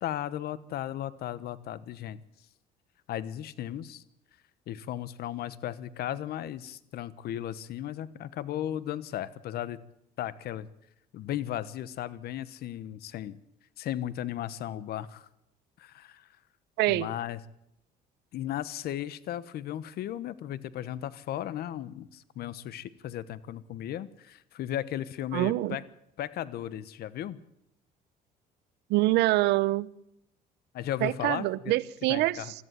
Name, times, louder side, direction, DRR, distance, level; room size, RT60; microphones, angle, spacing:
voice 1, 0.0-2.2 3.1-4.0 4.7-9.8 10.2-10.7 11.1-13.4 13.8-15.3 15.8-16.3 16.9-17.4 18.3-25.8 26.2-27.4 30.7-31.5 32.1-32.5, left 11 dB, 65° left, 1.2 m, -35 dB
voice 2, 16.8-17.1 25.3-25.8 28.9-29.9 31.0-32.4, right 18 dB, 85° right, 0.9 m, -25 dB
21.0 x 14.0 x 9.3 m
cardioid pair, 110°, 17 cm